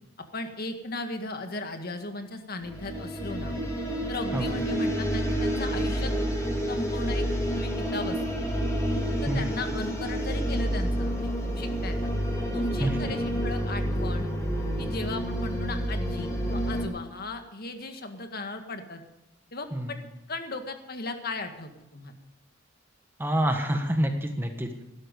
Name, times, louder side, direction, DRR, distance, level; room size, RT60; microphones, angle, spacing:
voice 1, 0.3-3.6 4.1-6.1 6.7-7.2 7.6-8.2 9.2-11.3 11.6-12.1 12.5-14.3 14.8-19.0 19.5-20.0 20.3-22.1, left 2 dB, 55° left, 6 dB, 1.8 m, -36 dB
sound 1, 2.6-16.9, equal, 15° left, 3.3 m, -29 dB
voice 2, 12.8-13.1 19.7-20.0 23.2-24.7, equal, 10° right, 4 dB, 1.4 m, -27 dB
16.5 x 13.0 x 5.3 m, 0.94 s
head